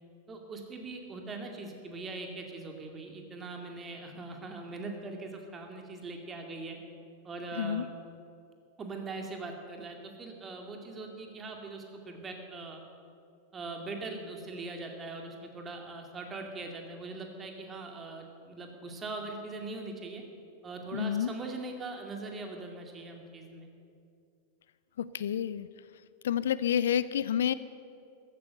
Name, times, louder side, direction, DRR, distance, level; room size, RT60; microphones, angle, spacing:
voice 1, 0.3-6.8 7.2-7.9 8.8-12.8 13.5-20.2 20.6-23.7, right 3 dB, 20° right, 3 dB, 2.3 m, -41 dB
voice 2, 7.5-7.8 20.9-21.3 25.0-25.7 26.2-27.5, left 9 dB, 60° left, 16 dB, 0.4 m, -29 dB
14.5 x 12.5 x 6.6 m, 2.4 s
figure-of-eight pair, 90°, 0 cm